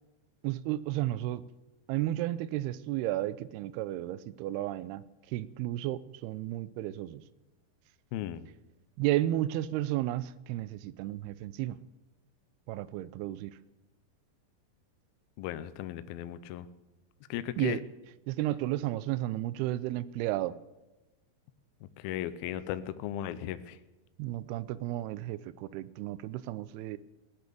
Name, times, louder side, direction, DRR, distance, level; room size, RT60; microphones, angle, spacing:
voice 1, 0.4-1.4 1.9-7.2 9.0-11.8 12.7-13.6 17.6-17.8 18.3-20.5 24.2-27.0, right 14 dB, 85° right, 17 dB, 2.6 m, -33 dB
voice 2, 8.1-8.5 15.4-16.7 17.3-17.8 22.0-23.8, left 12 dB, 80° left, 13 dB, 2.5 m, -36 dB
17.5 x 10.5 x 6.9 m, 1.1 s
omnidirectional pair, 4.5 m